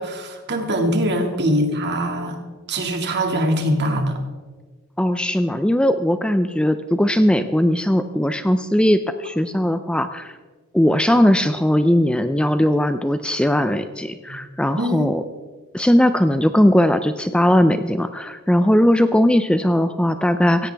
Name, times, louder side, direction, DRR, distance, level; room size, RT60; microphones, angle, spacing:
voice 1, 0.0-2.4 2.7-4.2 14.3-14.4 14.8-15.1, equal, 50° right, 3 dB, 2.1 m, -22 dB
voice 2, 5.0-10.4 10.7-15.2 15.7-20.7, equal, 5° left, 10 dB, 0.4 m, -18 dB
16.5 x 16.0 x 3.4 m, 1.4 s
head